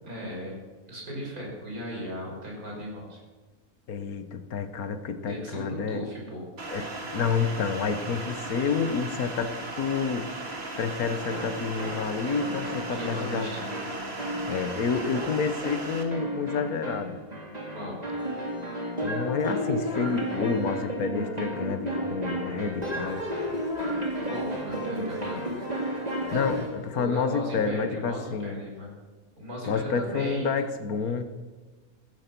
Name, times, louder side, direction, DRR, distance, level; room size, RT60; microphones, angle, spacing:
voice 1, 0.0-0.6 0.9-3.2 5.3-6.5 12.9-13.6 17.7-18.0 24.2-25.4 26.9-28.9 29.4-30.5, equal, 90° right, -2 dB, 5.9 m, -36 dB
voice 2, 3.9-6.1 6.7-10.4 10.8-13.5 14.5-17.2 19.0-23.2 26.3-28.6 29.7-31.2, left 5 dB, 85° left, 9 dB, 1.6 m, -29 dB
sound 1, 6.6-16.0, right 2 dB, 45° right, 2.3 m, -37 dB
sound 2, 11.3-26.8, equal, 25° right, 3.1 m, -33 dB
15.5 x 15.0 x 6.0 m, 1.3 s
omnidirectional pair, 1.5 m